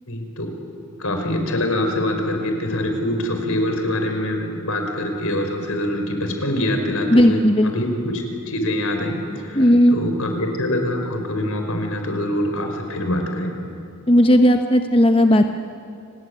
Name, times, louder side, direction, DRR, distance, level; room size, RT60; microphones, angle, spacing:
voice 1, 0.1-0.5 1.0-13.6, left 1 dB, 75° left, 4 dB, 4.9 m, -24 dB
voice 2, 7.1-7.7 9.5-10.0 14.1-15.6, equal, 25° left, 5 dB, 1.0 m, -15 dB
29.0 x 20.0 x 9.7 m, 2.5 s
head